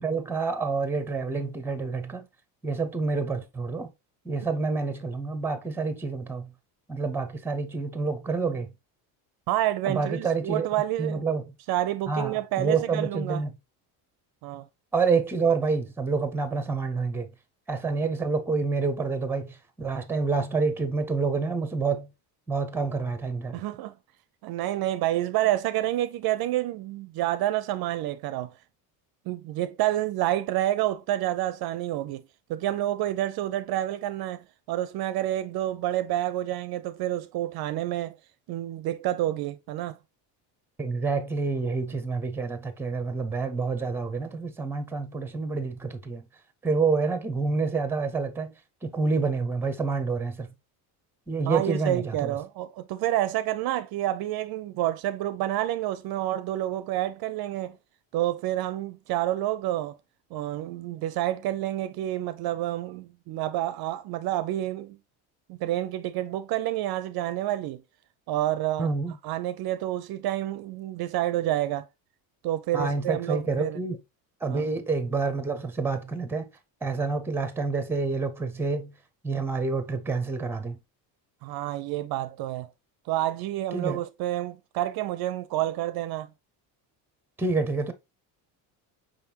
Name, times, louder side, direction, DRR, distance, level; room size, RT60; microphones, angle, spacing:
voice 1, 0.0-2.3 2.6-3.9 4.2-6.5 6.9-8.7 9.8-10.7 11.0-11.4 12.1-13.5 14.9-17.3 17.7-22.1 22.5-23.5 40.8-46.2 46.6-48.5 48.8-50.5 51.3-52.4 68.8-69.2 72.7-74.0 74.4-76.5 76.8-78.9 79.2-80.8 83.7-84.0 87.4-87.9, right 4 dB, 5° right, 0.6 m, -28 dB
voice 2, 9.5-11.2 11.7-13.4 14.4-14.7 23.5-23.9 24.4-28.5 29.3-32.2 32.5-38.2 38.5-40.0 51.5-57.8 58.1-60.0 60.3-65.0 65.5-67.8 68.3-68.9 69.2-71.9 72.4-73.8 74.5-74.7 81.4-82.7 83.1-86.3, right 14 dB, 55° right, 0.5 m, -29 dB
5.3 x 3.5 x 2.8 m
supercardioid pair, 105°, 45 cm